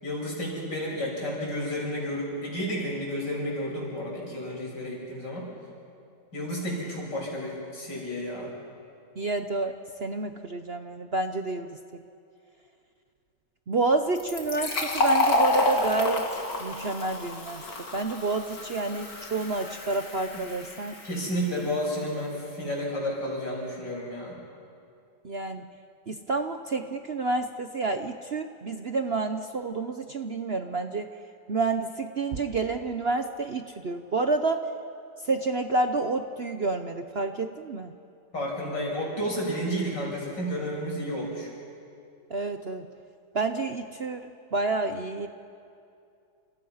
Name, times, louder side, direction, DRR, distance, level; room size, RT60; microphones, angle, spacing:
voice 1, 0.0-5.5 6.3-8.5 20.3-20.5 21.0-24.4 38.3-41.5, equal, 80° left, -2 dB, 7.5 m, -31 dB
voice 2, 9.2-12.0 13.7-16.3 16.6-17.7 17.9-20.9 25.2-25.6 26.1-31.1 31.5-34.7 35.2-37.9 42.3-42.9 43.3-45.3, right 3 dB, 45° right, 7 dB, 0.9 m, -29 dB
Fill (with liquid), 14.1-21.5, left 2 dB, 55° left, 3.1 m, -29 dB
29.5 x 29.0 x 5.7 m, 2.5 s
omnidirectional pair, 1.9 m